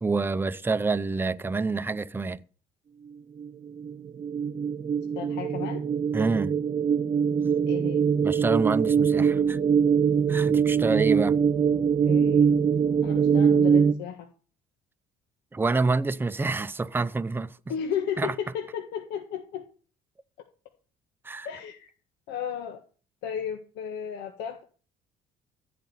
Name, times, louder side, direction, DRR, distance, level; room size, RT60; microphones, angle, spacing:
voice 1, 0.0-2.4 6.1-6.6 8.2-9.6 10.3-11.4 15.5-17.5 18.2-18.3 21.2-21.5, right 3 dB, 10° right, 0.6 m, -27 dB
sound 1, 3.4-13.9, right 7 dB, 35° right, 1.0 m, -23 dB
voice 2, 5.1-5.8 7.7-8.0 12.1-12.5 13.0-14.3 17.7-19.6 21.4-21.9 22.3-22.8 23.2-24.6, left 8 dB, 85° left, 1.6 m, -34 dB
15.5 x 5.2 x 9.5 m
cardioid pair, 110°, 17 cm